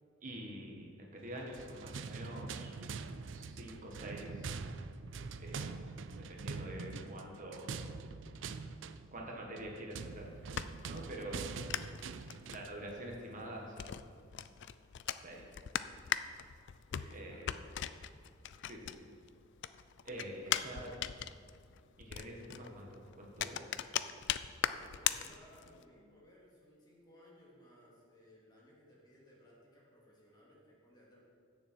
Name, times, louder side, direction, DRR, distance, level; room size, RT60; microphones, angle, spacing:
voice 1, 0.2-2.8 3.3-4.5 5.4-5.7 6.2-7.8 9.1-10.3 10.9-11.5 12.5-13.9 15.2-15.5 17.1-17.5 18.7-19.0 20.0-20.9 22.0-23.6, right 1 dB, 45° right, -1 dB, 1.5 m, -46 dB
sound 1, 1.4-12.8, right 4 dB, 70° right, 0.5 m, -44 dB
sound 2, 10.1-19.3 19.6-25.8, left 10 dB, 65° left, 0.4 m, -39 dB
voice 2, 16.9-17.7 20.1-21.1 24.6-31.2, left 1 dB, 20° left, -5 dB, 2.7 m, -61 dB
15.5 x 7.0 x 4.4 m, 2.2 s
head